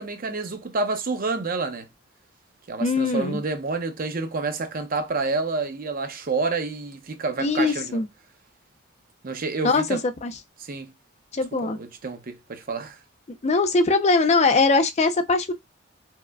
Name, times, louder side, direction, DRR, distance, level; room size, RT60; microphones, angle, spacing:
voice 1, 0.0-1.9 2.7-8.0 9.2-10.0 10.6-10.9 11.5-13.0, right 3 dB, 50° right, 0.6 m, -29 dB
voice 2, 2.8-3.4 7.4-8.1 9.6-10.3 11.3-11.8 13.4-15.5, left 3 dB, 35° left, 0.5 m, -21 dB
4.7 x 2.1 x 2.2 m
head